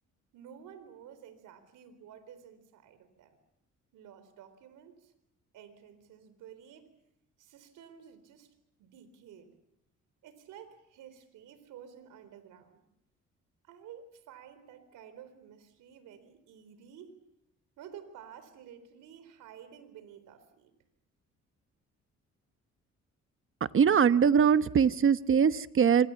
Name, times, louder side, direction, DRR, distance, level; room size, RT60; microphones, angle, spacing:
voice 1, 0.3-3.4 3.9-5.1 5.5-6.9 7.4-8.5 8.8-9.5 10.2-12.8 13.6-17.2 17.8-20.7, right 8 dB, 90° right, 11 dB, 4.0 m, -52 dB
voice 2, 23.7-26.1, right 7 dB, 45° right, 13 dB, 1.1 m, -22 dB
26.0 x 25.5 x 7.1 m, 0.79 s
cardioid pair, 90°, 30 cm